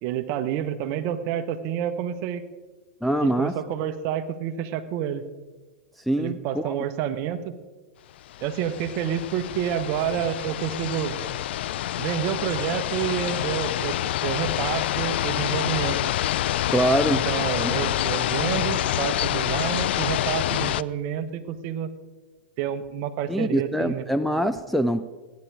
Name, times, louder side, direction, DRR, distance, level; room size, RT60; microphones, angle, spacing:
voice 1, 0.0-2.4 3.2-5.2 6.2-7.5 8.4-11.2 12.0-13.9 14.2-16.0 17.0-21.9 22.6-24.0, right 9 dB, 45° right, 10 dB, 1.2 m, -29 dB
voice 2, 3.0-3.5 6.1-6.8 16.7-17.2 17.6-17.7 23.3-25.0, equal, ahead, 8 dB, 0.5 m, -24 dB
sound 1, 8.3-20.8, left 13 dB, 70° left, 0.4 m, -27 dB
16.0 x 10.5 x 4.8 m, 1.3 s
hypercardioid pair, 115°, 6 cm